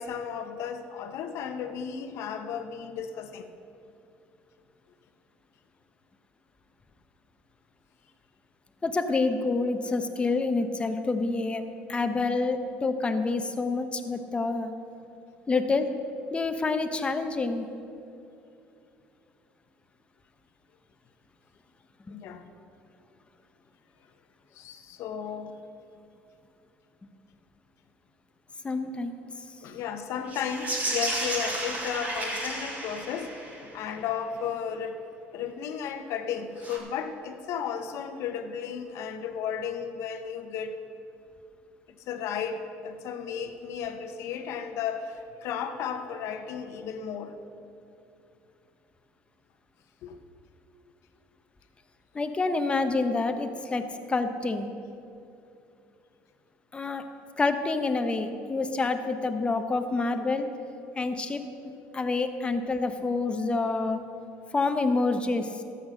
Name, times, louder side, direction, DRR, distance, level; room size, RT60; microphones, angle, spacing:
voice 1, 0.0-3.5 22.1-22.5 24.5-25.7 29.6-35.0 35.3-40.8 42.0-47.4 50.0-50.2, left 7 dB, 65° left, 8 dB, 1.0 m, -34 dB
voice 2, 8.8-14.7 15.5-15.9 16.3-17.6 28.6-29.1 52.1-53.8 54.1-54.7 56.7-57.0 57.4-60.5 60.9-64.0 64.5-65.6, left 3 dB, 20° left, 7 dB, 1.0 m, -27 dB
sound 1, 30.2-33.8 36.6-36.8, right 1 dB, 30° right, 3.3 m, -32 dB
12.5 x 8.1 x 6.4 m, 2.7 s
supercardioid pair, 100°, 5 cm